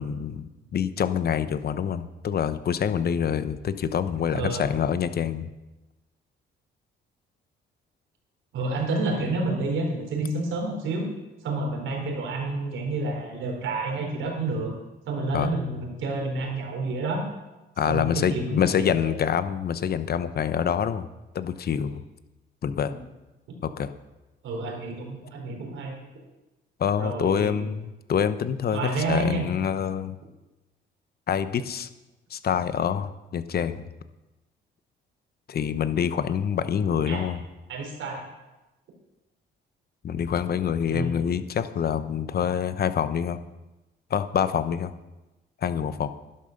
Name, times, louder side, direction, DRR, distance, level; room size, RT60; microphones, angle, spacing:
voice 1, 0.0-5.5 15.3-15.5 17.8-21.1 21.3-22.0 22.6-22.9 23.6-23.9 26.8-28.8 29.1-30.2 31.3-31.9 32.3-33.9 35.5-37.4 40.0-43.4 44.1-44.9 45.6-46.1, left 8 dB, 50° left, 12 dB, 0.9 m, -26 dB
voice 2, 4.3-4.6 8.5-11.1 11.4-14.7 15.1-17.2 17.9-19.2 22.9-23.0 24.4-26.0 27.0-27.6 28.7-29.5 37.1-37.3 37.7-38.2 40.9-41.1, right 2 dB, 80° right, 0 dB, 4.1 m, -29 dB
11.0 x 11.0 x 6.6 m, 1.1 s
cardioid pair, 90°, 20 cm